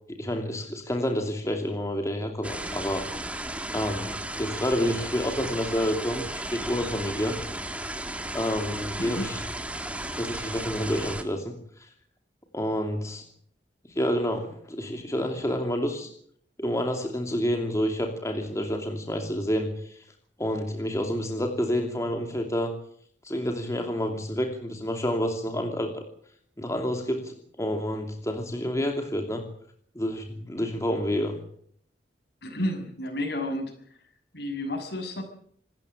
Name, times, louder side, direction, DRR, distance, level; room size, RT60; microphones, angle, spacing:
voice 1, 0.1-3.1 3.7-6.3 6.5-7.4 8.3-9.4 10.2-11.5 11.8-11.9 12.5-13.2 13.9-16.1 16.6-20.0 20.4-22.7 23.2-26.0 26.6-29.4 29.9-31.4, equal, 20° left, 3 dB, 2.7 m, -29 dB
sound 1, 2.4-11.2, right 1 dB, 10° right, 2.2 m, -34 dB
voice 2, 9.0-9.3 32.4-33.7 34.3-35.2, left 1 dB, 65° left, 7 dB, 6.7 m, -31 dB
26.0 x 13.5 x 8.9 m, 0.64 s
head